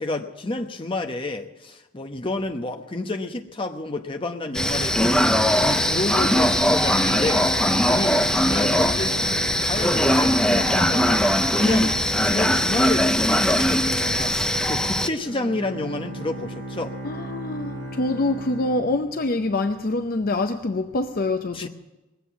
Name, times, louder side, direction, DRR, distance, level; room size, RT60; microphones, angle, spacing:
voice 1, 0.0-5.1 5.6-7.5 7.8-9.3 9.7-11.2 11.5-17.0 21.5-21.7, left 2 dB, 25° left, 1.0 m, -29 dB
sound 1, 4.5-15.1, equal, 5° left, 0.5 m, -20 dB
sound 2, 5.4-12.9, right 2 dB, 45° right, 1.7 m, -38 dB
Bowed string instrument, 15.1-19.6, right 1 dB, 20° right, 6.0 m, -36 dB
voice 2, 17.0-21.7, left 2 dB, 45° left, 0.6 m, -25 dB
19.5 x 8.2 x 8.1 m
head